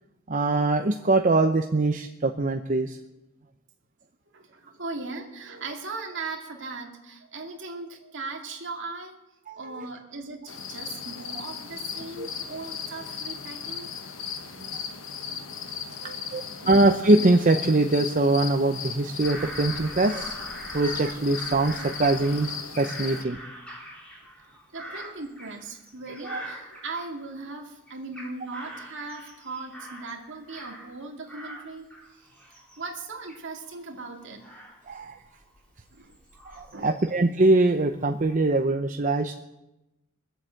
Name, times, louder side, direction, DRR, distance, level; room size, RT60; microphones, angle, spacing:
voice 1, 0.3-3.0 9.5-9.9 12.2-12.3 14.6-14.7 16.3-20.4 20.7-23.4 26.2-26.4 34.9-35.2 36.6-39.4, right 2 dB, 40° right, 5 dB, 0.7 m, -23 dB
voice 2, 4.3-9.2 9.6-13.9 14.4-14.6 15.3-15.5 16.0-16.8 24.7-31.9 32.1-32.3 32.8-34.4 35.9-36.2 36.7-37.0, right 3 dB, 60° right, 2 dB, 2.3 m, -38 dB
sound 1, 10.5-23.2, left 6 dB, 65° left, 1.2 m, -37 dB
Bird vocalization bird call bird song / Crow, 19.2-27.5 27.9-31.0 31.3-37.3 37.8-38.4, right 1 dB, 5° left, 3.7 m, -43 dB
22.0 x 8.0 x 7.8 m, 0.99 s
head